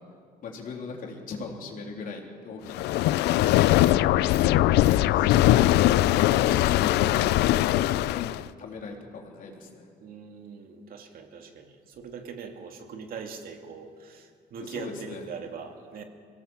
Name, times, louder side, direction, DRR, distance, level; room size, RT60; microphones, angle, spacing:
voice 1, 0.4-3.2 4.9-8.3 8.6-9.9 14.7-15.2, left 4 dB, 55° left, 1 dB, 3.7 m, -39 dB
sound 1, 2.7-8.5, left 15 dB, 80° left, 0.5 m, -21 dB
voice 2, 3.3-4.3 10.0-16.0, right 5 dB, 60° right, 4 dB, 2.5 m, -42 dB
23.5 x 17.5 x 7.3 m, 2.1 s
cardioid pair, 110°, 17 cm